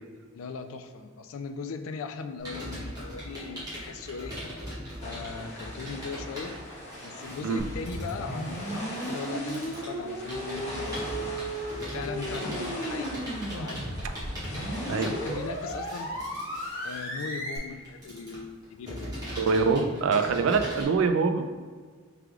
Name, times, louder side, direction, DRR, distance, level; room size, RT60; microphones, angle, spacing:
voice 1, 0.3-4.4 5.0-6.6 7.0-10.9 11.9-14.2 14.6-16.1 16.8-19.1, left 5 dB, 80° left, 8 dB, 0.3 m, -39 dB
Computer keyboard, 2.4-20.8, equal, 20° right, 1.0 m, -40 dB
sound 1, 5.0-15.7, left 1 dB, 30° left, 0.9 m, -41 dB
sound 2, 7.6-17.6, right 1 dB, 60° left, 1.0 m, -35 dB
voice 2, 19.4-21.5, right 4 dB, 70° right, 7 dB, 0.3 m, -24 dB
4.8 x 3.3 x 2.4 m, 1.5 s
head